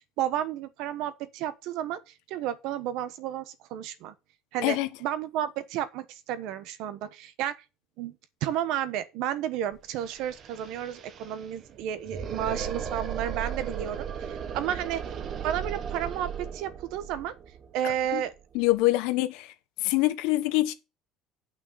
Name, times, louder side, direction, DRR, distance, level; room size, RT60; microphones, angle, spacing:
voice 1, 0.0-2.0 2.3-4.1 4.5-7.6 8.0-8.1 8.4-15.0 15.4-17.3 17.7-18.3, right 11 dB, 70° right, 1.1 m, -32 dB
sound 1, 9.7-9.8 10.0-18.8, right 7 dB, 40° right, 1.0 m, -36 dB
voice 2, 18.5-19.5 19.8-20.7, left 18 dB, 80° left, 1.1 m, -24 dB
9.1 x 5.9 x 5.6 m
cardioid pair, 145°, 0 cm